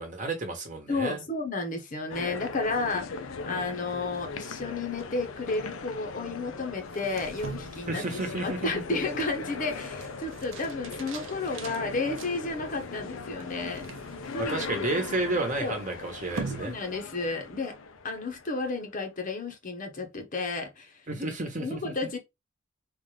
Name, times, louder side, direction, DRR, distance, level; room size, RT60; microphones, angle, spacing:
voice 1, 0.0-1.2 7.9-8.7 14.4-16.8 21.1-22.0, right 2 dB, 40° right, 1.0 m, -31 dB
voice 2, 0.9-8.0 8.4-13.9 14.3-14.9 15.6-15.8 16.6-17.7 18.0-21.0 21.6-22.2, left 3 dB, 40° left, 0.8 m, -32 dB
sound 1, 2.1-18.7, left 4 dB, 80° left, 0.5 m, -40 dB
sound 2, 6.8-17.4, right 4 dB, 70° right, 0.7 m, -44 dB
3.8 x 2.4 x 3.2 m
head